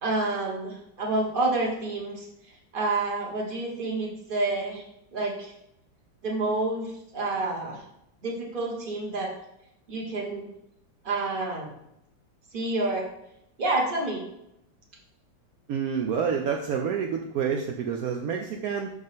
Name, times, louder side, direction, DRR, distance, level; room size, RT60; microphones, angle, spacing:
voice 1, 0.0-2.3 2.7-4.8 5.1-5.5 6.2-7.8 8.2-9.3 9.9-10.5 11.0-11.7 12.5-13.1 13.6-14.2, right 2 dB, 30° right, -1 dB, 1.3 m, -28 dB
voice 2, 15.7-18.9, right 7 dB, 75° right, 2 dB, 0.8 m, -28 dB
6.2 x 5.0 x 3.6 m, 0.81 s
omnidirectional pair, 2.1 m